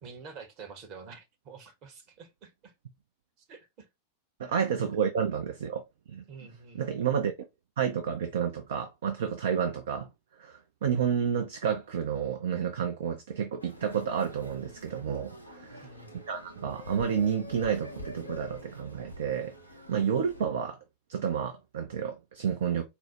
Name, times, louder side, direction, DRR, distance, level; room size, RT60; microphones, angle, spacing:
voice 1, 0.0-2.7 3.5-3.9 6.3-6.9 15.8-16.2, right 5 dB, 40° right, 1.0 m, -48 dB
voice 2, 4.4-6.2 6.7-7.3 7.8-10.1 10.4-15.9 16.3-19.5 19.9-20.8 21.1-22.8, right 7 dB, 60° right, 0.5 m, -30 dB
sound 1, 13.6-20.4, equal, 90° left, 0.6 m, -46 dB
4.4 x 2.0 x 3.0 m
figure-of-eight pair, 90°, 0 cm